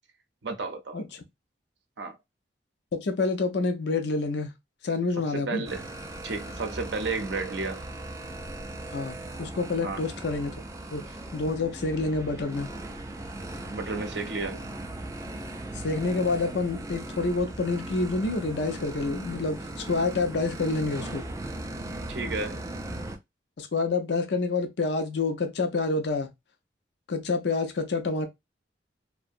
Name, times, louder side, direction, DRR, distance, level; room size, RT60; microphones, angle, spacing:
voice 1, 0.4-1.0 2.0-2.2 5.3-5.8 6.2-7.8 9.8-10.1 13.7-14.6 22.1-22.6, right 3 dB, 75° right, 0.6 m, -32 dB
voice 2, 2.9-4.5 4.8-5.6 8.9-10.5 10.9-12.7 15.7-21.2 23.6-26.3 27.1-28.3, left 3 dB, 75° left, 0.5 m, -28 dB
sound 1, 5.7-23.2, right 1 dB, 20° right, 0.3 m, -38 dB
2.7 x 2.1 x 2.4 m
head